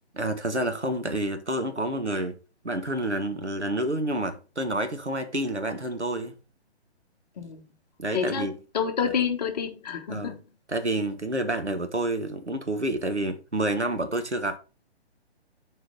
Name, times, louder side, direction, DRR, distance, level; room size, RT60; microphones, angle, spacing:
voice 1, 0.1-2.4 2.6-6.4 8.0-8.5 10.1-10.4 10.7-14.6, right 1 dB, 90° right, 1.6 m, -28 dB
voice 2, 8.1-8.5 8.7-10.4, left 7 dB, 40° left, 1.4 m, -28 dB
6.9 x 4.5 x 5.5 m
figure-of-eight pair, 135°, 33 cm